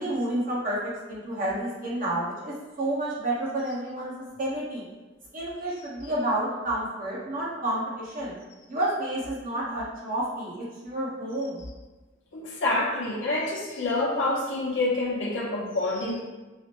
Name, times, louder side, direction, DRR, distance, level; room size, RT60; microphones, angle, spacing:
voice 1, 0.0-4.8 5.3-8.3 8.7-11.7, right 1 dB, 45° right, -7 dB, 1.1 m, -30 dB
voice 2, 12.3-16.2, left 2 dB, 65° left, -3 dB, 0.7 m, -27 dB
4.8 x 2.1 x 2.9 m, 1.2 s
head